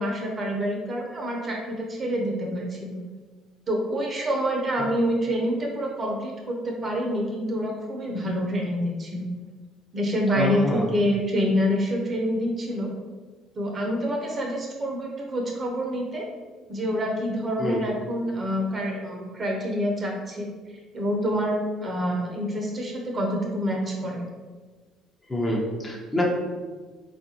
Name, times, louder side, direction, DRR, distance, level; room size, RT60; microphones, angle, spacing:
voice 1, 0.0-3.0 3.7-9.3 9.9-12.9 13.6-16.3 16.7-20.5 20.9-24.2, equal, 40° right, 0 dB, 0.7 m, -27 dB
voice 2, 10.4-10.9 17.6-17.8 25.3-26.2, left 1 dB, 25° left, -2 dB, 0.8 m, -27 dB
3.7 x 2.5 x 2.8 m, 1.4 s
hypercardioid pair, 60°, 0 cm